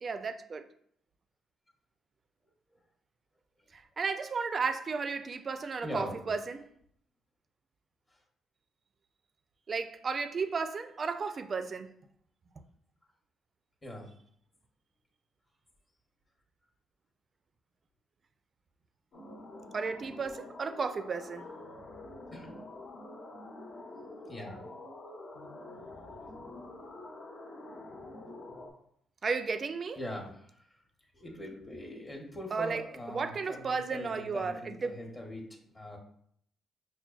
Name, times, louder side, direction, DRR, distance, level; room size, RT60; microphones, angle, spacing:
voice 1, 0.0-0.7 3.7-6.7 9.7-11.9 19.7-21.5 29.2-30.0 32.5-35.0, right 5 dB, 40° right, 0.3 m, -34 dB
voice 2, 5.8-6.2 13.8-14.1 22.3-22.6 24.3-24.7 30.0-30.5 31.1-36.0, left 1 dB, 25° left, 0.8 m, -42 dB
sound 1, 19.1-28.7, left 2 dB, 70° left, 0.9 m, -47 dB
5.7 x 2.1 x 2.3 m
cardioid pair, 90°, 0 cm